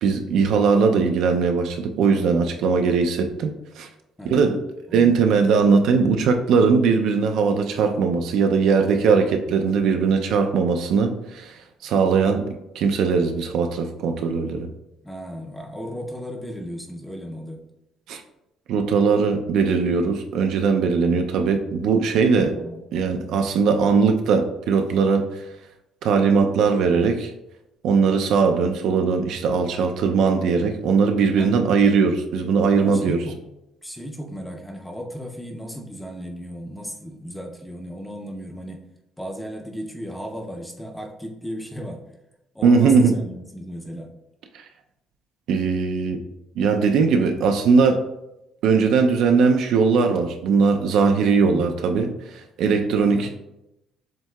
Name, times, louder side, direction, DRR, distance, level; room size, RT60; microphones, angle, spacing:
voice 1, 0.0-3.9 4.2-4.6 4.9-12.4 12.8-14.7 18.1-18.2 18.7-22.6 22.9-25.3 26.0-27.3 27.8-33.2 42.6-43.2 45.5-46.2 46.6-48.0 48.6-53.4, right 5 dB, 65° right, 6 dB, 0.4 m, -20 dB
voice 2, 2.1-2.5 4.2-4.4 4.9-5.1 15.0-17.6 22.5-22.8 31.3-31.6 32.8-33.5 33.8-38.8 39.2-42.0 42.5-44.1 51.2-51.7 53.0-53.3, equal, 5° left, 2 dB, 0.4 m, -35 dB
7.4 x 2.7 x 2.2 m, 0.90 s
cardioid pair, 175°, 0 cm